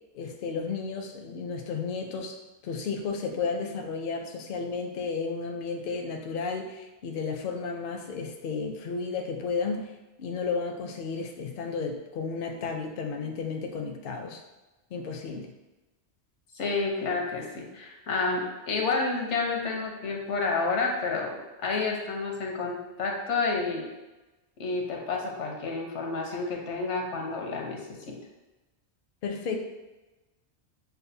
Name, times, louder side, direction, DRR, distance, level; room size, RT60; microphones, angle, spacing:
voice 1, 0.1-2.4 2.6-9.9 10.2-14.4 14.9-15.5 29.2-29.6, left 5 dB, 60° left, 3 dB, 0.6 m, -33 dB
voice 2, 16.5-23.9 24.6-28.1, left 3 dB, 85° left, 0 dB, 1.1 m, -30 dB
6.6 x 2.3 x 2.7 m, 1.1 s
omnidirectional pair, 1.2 m